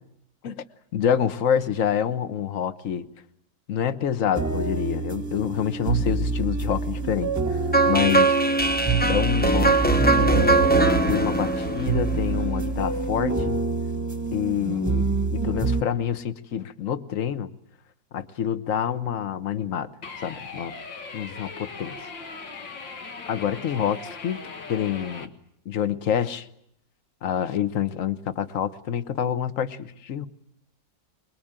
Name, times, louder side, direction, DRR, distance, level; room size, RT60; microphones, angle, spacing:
voice 1, 0.9-3.1 3.7-8.4 9.1-10.6 11.1-13.6 14.3-17.5 18.1-19.9 20.2-20.7 21.1-22.0 23.3-24.4 24.7-25.3 25.6-26.5 27.2-30.3, left 9 dB, 50° left, 11 dB, 1.4 m, -27 dB
sound 1, 4.3-15.8, right 3 dB, 10° right, 1.1 m, -27 dB
sound 2, 7.7-12.7, right 3 dB, 15° left, 0.3 m, -21 dB
sound 3, 20.0-25.3, left 4 dB, 80° left, 2.3 m, -39 dB
24.0 x 22.5 x 8.9 m, 0.75 s
omnidirectional pair, 2.0 m